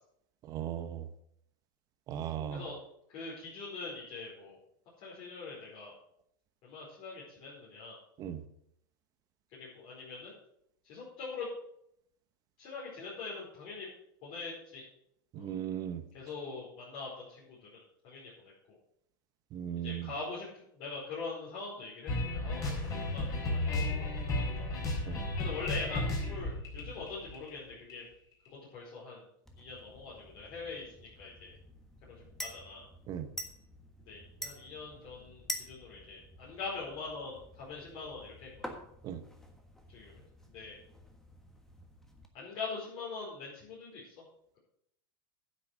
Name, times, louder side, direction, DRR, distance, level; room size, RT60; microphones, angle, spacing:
voice 1, 0.4-1.1 2.1-2.7 8.2-8.4 15.3-16.0 19.5-20.1 25.0-25.2 33.1-33.3 39.0-39.2, right 10 dB, 35° right, 8 dB, 1.0 m, -37 dB
voice 2, 3.1-4.6 5.0-5.9 6.6-7.9 9.5-10.3 10.8-11.5 12.6-13.9 14.2-14.8 15.3-15.5 16.1-18.5 19.8-24.1 24.6-24.8 25.4-28.1 28.7-29.2 29.6-31.6 32.0-32.9 34.1-38.7 39.9-40.2 40.5-40.8 42.3-44.1, left 4 dB, 45° left, -7 dB, 4.8 m, -43 dB
sound 1, 22.1-27.9, left 2 dB, 30° left, 4.3 m, -33 dB
sound 2, 29.5-42.3, equal, 5° left, 1.4 m, -48 dB
9.7 x 8.0 x 6.3 m, 0.73 s
supercardioid pair, 145°, 11 cm